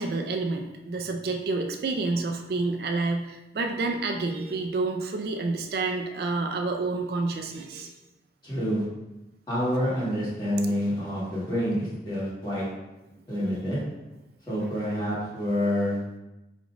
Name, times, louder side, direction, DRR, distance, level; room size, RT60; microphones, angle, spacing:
voice 1, 0.0-7.9 15.6-15.7, right 3 dB, 60° right, 3 dB, 0.3 m, -29 dB
voice 2, 8.4-8.8 9.5-12.7 13.3-13.8 14.5-16.0, equal, 25° left, -9 dB, 1.5 m, -27 dB
5.0 x 3.0 x 2.5 m, 1.0 s
head